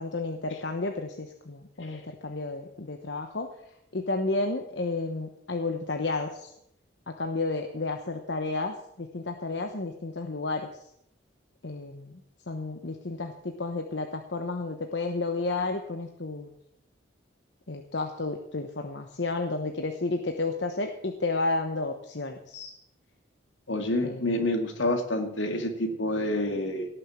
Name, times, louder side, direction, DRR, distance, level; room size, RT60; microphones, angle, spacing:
voice 1, 0.0-3.5 3.9-6.5 7.1-10.8 11.6-12.2 12.5-16.6 17.7-22.7 24.0-24.3, left 3 dB, 65° left, 5 dB, 1.0 m, -32 dB
voice 2, 23.7-26.9, left 1 dB, 85° left, 5 dB, 2.3 m, -28 dB
17.5 x 6.8 x 7.3 m, 0.77 s
head